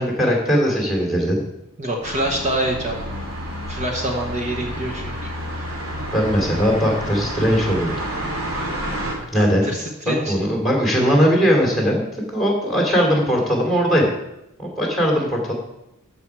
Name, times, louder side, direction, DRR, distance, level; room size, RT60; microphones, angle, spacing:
voice 1, 0.0-1.4 6.1-7.9 9.3-9.7 10.0-12.0 12.3-14.1 14.6-15.5, equal, ahead, -1 dB, 2.9 m, -19 dB
voice 2, 1.8-3.1 3.7-5.2 9.3-10.5, right 1 dB, 30° right, 1 dB, 1.3 m, -26 dB
sound 1, 2.0-9.1, equal, 65° right, 3.2 m, -29 dB
13.5 x 6.0 x 4.8 m, 0.88 s
head